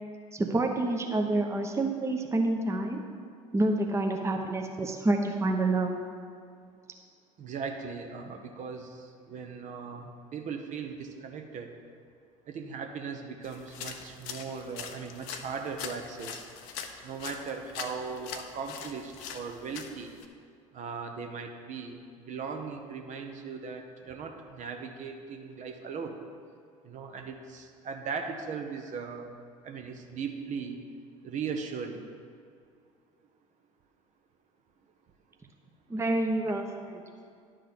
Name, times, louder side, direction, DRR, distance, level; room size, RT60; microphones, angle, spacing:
voice 1, 0.3-3.0 3.5-6.0 35.9-36.6 36.9-37.0, right 2 dB, 15° right, 3 dB, 0.9 m, -28 dB
voice 2, 7.4-11.7 12.5-16.5 17.0-20.2 20.7-22.0 22.3-26.2 26.8-29.3 29.6-30.8 31.2-32.0, right 5 dB, 45° right, 5 dB, 0.9 m, -38 dB
sound 1, 13.4-20.3, left 7 dB, 60° left, 0.7 m, -42 dB
11.0 x 3.9 x 6.7 m, 2.2 s
figure-of-eight pair, 65°, 17 cm